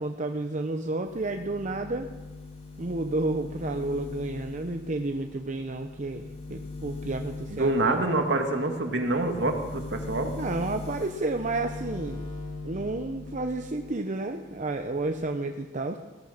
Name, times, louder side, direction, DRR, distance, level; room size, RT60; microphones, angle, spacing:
voice 1, 0.0-2.1 2.8-8.0 10.3-12.2 12.6-16.0, right 2 dB, 45° right, 6 dB, 0.8 m, -31 dB
sound 1, 1.0-14.0 14.3-15.3, left 3 dB, 40° left, 4.5 m, -41 dB
voice 2, 7.5-10.3, right 2 dB, 65° right, 4 dB, 2.0 m, -26 dB
16.5 x 11.5 x 6.6 m, 1.2 s
head